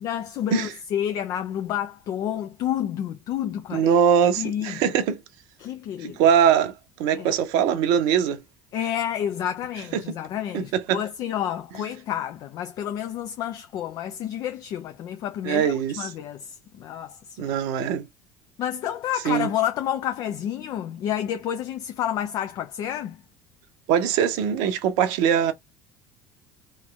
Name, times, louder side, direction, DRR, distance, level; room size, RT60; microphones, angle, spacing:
voice 1, 0.0-4.0 4.4-4.9 5.6-6.2 7.1-7.4 8.7-17.6 18.6-23.2, left 10 dB, 45° left, 0.5 m, -30 dB
voice 2, 3.7-5.2 6.0-6.7 7.0-8.4 9.9-10.0 10.5-11.0 15.4-16.1 17.4-18.1 19.2-19.5 23.9-25.5, right 8 dB, 55° right, 0.7 m, -22 dB
3.0 x 3.0 x 2.3 m
figure-of-eight pair, 60°, 8 cm